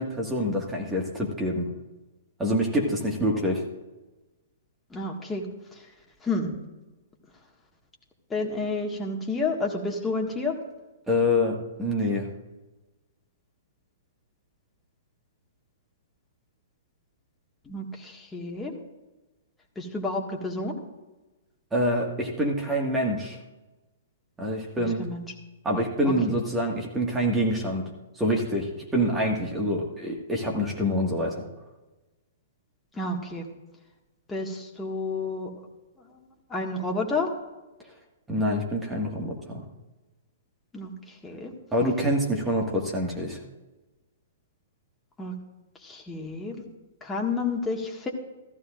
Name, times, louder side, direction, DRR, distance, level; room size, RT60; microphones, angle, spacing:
voice 1, 0.0-1.7 2.4-3.6 11.1-12.3 21.7-23.4 24.4-25.1 25.6-27.8 28.2-31.5 38.3-39.6 41.7-43.4, equal, 10° right, 0 dB, 1.9 m, -26 dB
voice 2, 4.9-5.5 6.2-6.5 8.3-10.6 17.7-18.7 19.8-20.8 24.8-25.2 26.0-26.1 32.9-33.5 34.3-35.5 36.5-37.3 40.7-41.5 45.2-45.3 45.8-46.6 47.0-48.1, left 3 dB, 10° left, 0 dB, 1.8 m, -30 dB
15.0 x 14.0 x 2.6 m, 1.1 s
figure-of-eight pair, 120°, 0 cm